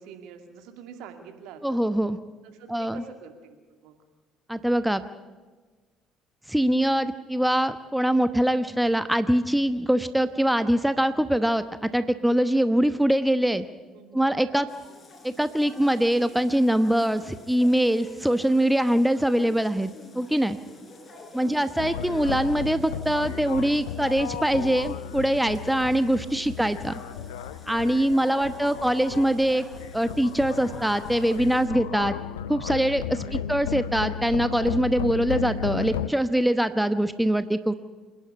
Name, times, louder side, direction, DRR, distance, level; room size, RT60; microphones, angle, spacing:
voice 1, 0.0-1.8 2.4-4.0 13.9-14.3 15.7-15.8 21.4-21.8 26.3-26.5 28.2-29.0 33.2-33.7, right 6 dB, 65° right, 5 dB, 2.4 m, -47 dB
voice 2, 1.6-2.2 2.7-3.0 4.5-5.0 6.5-13.7 14.1-14.7 15.2-20.6 21.3-26.9 27.7-29.7 29.9-32.2 32.5-37.7, right 1 dB, 5° right, 11 dB, 1.0 m, -23 dB
sound 1, 14.7-31.7, left 2 dB, 30° left, 5.5 m, -47 dB
sound 2, 21.8-36.1, left 9 dB, 80° left, 0.5 m, -34 dB
27.0 x 11.0 x 9.7 m, 1.3 s
hypercardioid pair, 55°, 0 cm